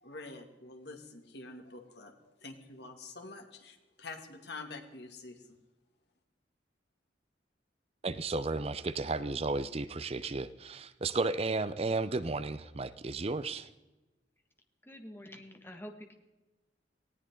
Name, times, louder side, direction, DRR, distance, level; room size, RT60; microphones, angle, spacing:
voice 1, 0.0-5.4, left 3 dB, 65° left, 4 dB, 2.2 m, -47 dB
voice 2, 8.0-13.7, right 3 dB, 35° right, 13 dB, 0.6 m, -33 dB
voice 3, 14.8-16.1, equal, 15° left, 5 dB, 1.7 m, -47 dB
19.0 x 17.0 x 3.8 m, 1.1 s
head